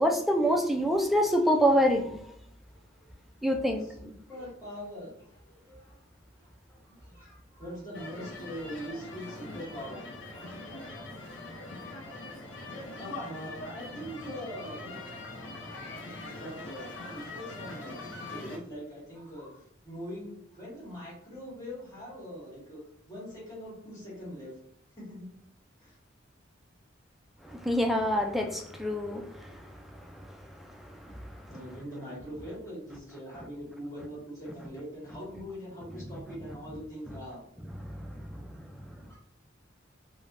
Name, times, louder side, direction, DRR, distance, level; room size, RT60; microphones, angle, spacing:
voice 1, 0.0-2.2 3.4-3.9 27.4-31.5 37.8-38.9, equal, ahead, 3 dB, 0.3 m, -28 dB
voice 2, 2.7-3.1 3.4-3.5 4.0-6.1 6.4-10.1 10.6-11.0 11.8-15.1 15.3-22.8 23.1-24.5 25.0-25.3 25.8-25.9 31.5-37.4 39.1-39.2, equal, 15° left, -6 dB, 1.4 m, -43 dB
sound 1, 7.9-18.6, left 2 dB, 70° left, 0.6 m, -42 dB
3.3 x 2.1 x 2.5 m, 0.72 s
head